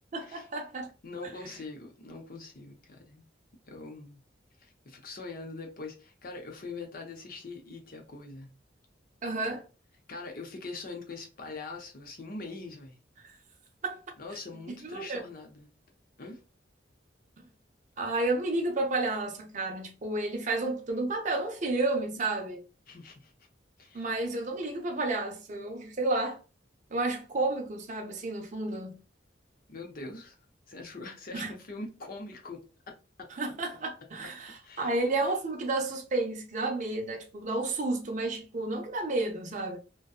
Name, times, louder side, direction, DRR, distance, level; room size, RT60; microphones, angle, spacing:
voice 1, 0.1-0.9 9.2-9.6 13.2-13.4 13.8-14.0 14.7-15.2 18.0-22.6 23.9-26.4 26.9-29.0 31.3-31.5 33.4-39.8, right 2 dB, 40° right, 0.5 m, -31 dB
voice 2, 1.0-3.2 3.7-4.2 4.6-8.5 10.1-13.0 14.2-15.7 16.2-16.4 22.9-23.3 23.8-24.0 29.7-30.3 30.7-32.6 32.9-33.3 34.6-34.9, left 3 dB, 50° left, 0.7 m, -43 dB
2.6 x 2.2 x 2.3 m
head